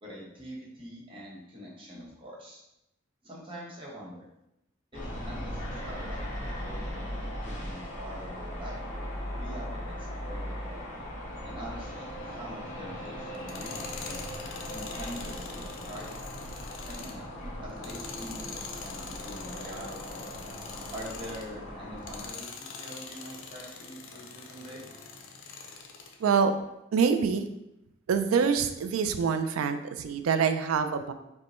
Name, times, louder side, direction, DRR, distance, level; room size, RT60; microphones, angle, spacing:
voice 1, 0.0-2.6 3.2-4.3 4.9-7.1 7.4-8.9 9.4-10.8 11.4-14.2 14.7-16.1 16.8-17.3 17.6-20.2 20.9-24.9, equal, 25° right, -5 dB, 0.9 m, -44 dB
sound 1, 4.9-22.3, equal, 35° left, 0.9 m, -38 dB
sound 2, 5.5-10.9, left 1 dB, 15° left, 0.5 m, -50 dB
Tools, 13.3-21.5 22.0-26.2, left 5 dB, 70° left, 0.5 m, -44 dB
voice 2, 26.2-26.5 26.9-27.5 28.1-31.1, right 6 dB, 85° right, 9 dB, 0.4 m, -25 dB
5.1 x 2.1 x 3.0 m, 0.87 s
head